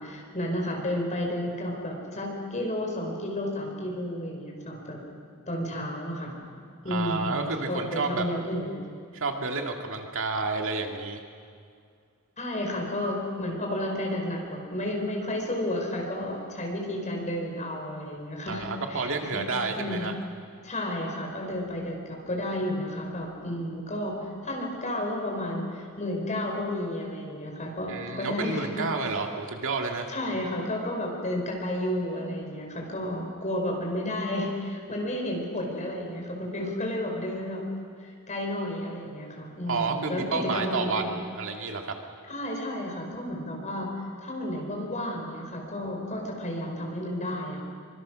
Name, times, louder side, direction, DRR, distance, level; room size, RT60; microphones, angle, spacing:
voice 1, 0.0-5.0 5.5-6.4 6.8-8.8 12.4-19.4 19.8-20.1 20.6-28.9 30.1-37.6 38.0-41.2 42.3-47.6, left 1 dB, 35° left, 0 dB, 4.9 m, -32 dB
voice 2, 6.9-8.3 9.1-11.2 18.5-20.1 27.9-30.1 39.7-41.9, right 4 dB, 65° right, 3 dB, 2.2 m, -30 dB
24.5 x 24.5 x 6.4 m, 2.1 s
head